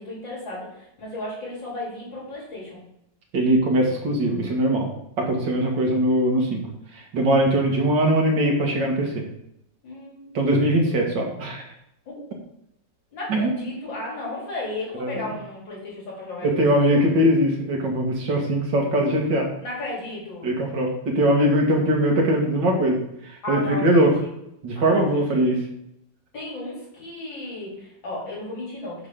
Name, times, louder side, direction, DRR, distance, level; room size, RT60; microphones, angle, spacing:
voice 1, 0.0-2.8 9.8-10.3 12.1-12.3 13.1-17.1 19.6-20.5 23.4-24.4 24.7-25.5 26.3-29.1, left 2 dB, 80° left, -5 dB, 4.0 m, -34 dB
voice 2, 3.3-4.9 5.2-6.6 6.9-9.2 10.3-11.6 13.3-13.5 15.0-15.2 16.4-19.5 20.4-23.0 23.5-24.1 24.6-25.6, right 1 dB, 75° right, 0 dB, 2.3 m, -21 dB
7.8 x 6.6 x 3.7 m, 0.79 s
omnidirectional pair, 2.0 m